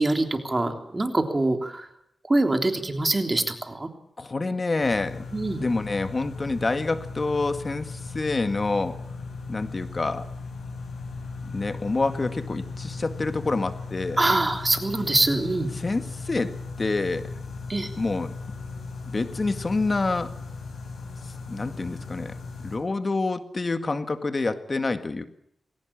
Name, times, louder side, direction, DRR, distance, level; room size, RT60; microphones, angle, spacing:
voice 1, 0.0-1.9 2.3-3.9 5.3-5.6 14.2-15.7 17.7-17.9, right 2 dB, 25° right, 6 dB, 3.4 m, -24 dB
voice 2, 4.2-5.2 5.6-8.9 9.5-10.2 11.5-14.2 15.7-16.5 16.8-17.2 18.0-18.3 19.1-20.3 21.5-22.3 22.6-25.2, left 3 dB, 40° left, 10 dB, 2.0 m, -27 dB
sound 1, 4.8-22.8, left 4 dB, 75° left, 7.2 m, -37 dB
21.0 x 18.0 x 8.7 m, 0.72 s
cardioid pair, 75°, 0 cm